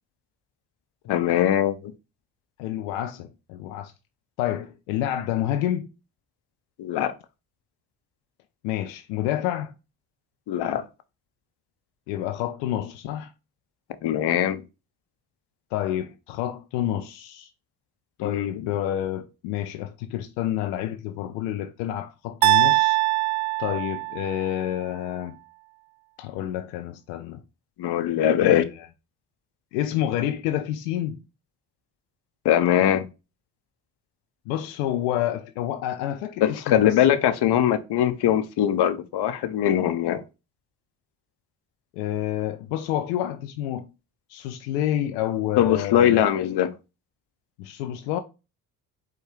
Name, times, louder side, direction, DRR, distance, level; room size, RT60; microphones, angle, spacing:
voice 1, 1.1-1.9 6.8-7.1 10.5-10.8 14.0-14.6 18.2-18.5 27.8-28.6 32.4-33.1 36.4-40.2 45.6-46.7, left 11 dB, 60° left, 0.8 m, -21 dB
voice 2, 2.6-3.9 4.4-5.9 8.6-9.7 12.1-13.3 15.7-17.5 18.2-23.0 23.6-25.4 26.2-27.4 28.4-28.9 29.7-31.2 34.5-37.0 41.9-43.9 44.3-46.3 47.6-48.2, left 12 dB, 85° left, 0.6 m, -29 dB
sound 1, 22.4-24.6, right 19 dB, 55° right, 0.7 m, -22 dB
4.9 x 2.3 x 4.4 m
hypercardioid pair, 55°, 46 cm